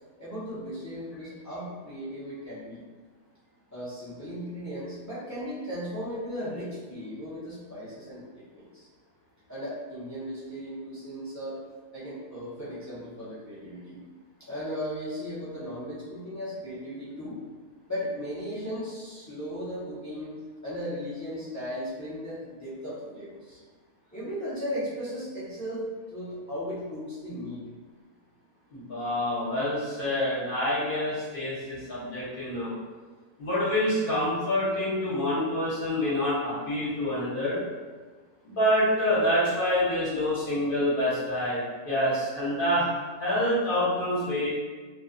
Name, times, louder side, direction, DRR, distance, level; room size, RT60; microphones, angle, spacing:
voice 1, 0.2-2.8 3.7-8.9 9.5-11.6 11.9-14.0 14.4-17.4 17.9-23.6 24.1-27.6, equal, 20° left, -12 dB, 0.4 m, -36 dB
voice 2, 28.7-32.7 33.4-37.6 38.4-42.9 43.2-44.5, left 1 dB, 45° left, -9 dB, 0.9 m, -27 dB
2.4 x 2.3 x 2.4 m, 1.4 s
omnidirectional pair, 1.6 m